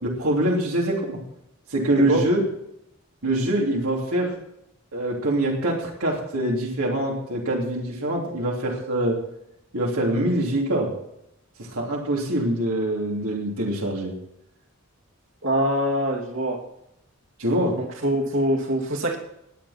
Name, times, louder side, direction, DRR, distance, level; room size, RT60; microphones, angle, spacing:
voice 1, 0.0-1.2 1.7-2.4 3.2-4.4 4.9-9.2 9.7-10.9 11.6-14.1 17.4-17.8, right 1 dB, 85° right, -2 dB, 3.1 m, -24 dB
voice 2, 15.4-16.6 17.8-19.2, equal, 65° right, 0 dB, 2.7 m, -24 dB
20.0 x 8.9 x 4.3 m, 0.80 s
head